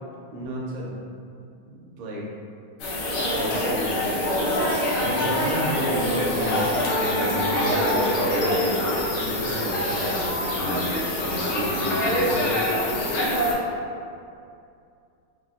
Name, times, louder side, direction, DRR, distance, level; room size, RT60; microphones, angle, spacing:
voice 1, 0.3-1.0 1.2-1.3 1.7-2.3 3.2-12.6, right 1 dB, 90° right, -4 dB, 1.5 m, -32 dB
sound 1, 2.8-13.5, left 1 dB, 80° left, 1.5 m, -24 dB
3.9 x 2.0 x 2.4 m, 2.4 s
omnidirectional pair, 2.3 m